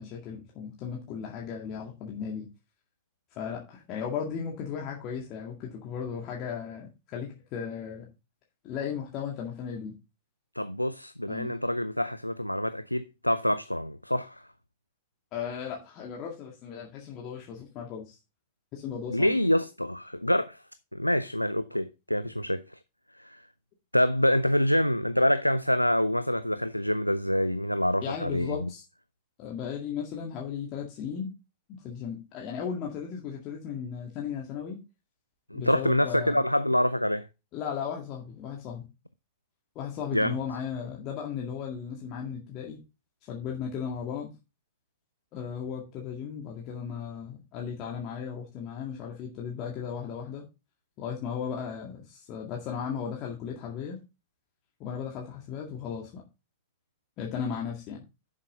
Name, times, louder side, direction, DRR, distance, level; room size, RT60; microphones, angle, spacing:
voice 1, 0.0-2.5 3.4-8.1 8.6-9.9 11.3-11.6 15.3-18.2 18.7-19.4 28.0-28.8 29.4-31.3 31.7-34.8 35.5-36.4 37.5-38.9 39.8-42.8 43.2-44.3 45.3-50.4 51.0-54.0 54.8-56.2 57.2-58.0, left 7 dB, 40° left, 2.1 m, -36 dB
voice 2, 10.6-14.4 19.1-20.6 20.9-22.6 23.2-23.4 23.9-28.7 35.5-37.3 40.1-40.3, left 1 dB, 90° left, 0.4 m, -26 dB
9.8 x 7.5 x 3.7 m
figure-of-eight pair, 90°, 0 cm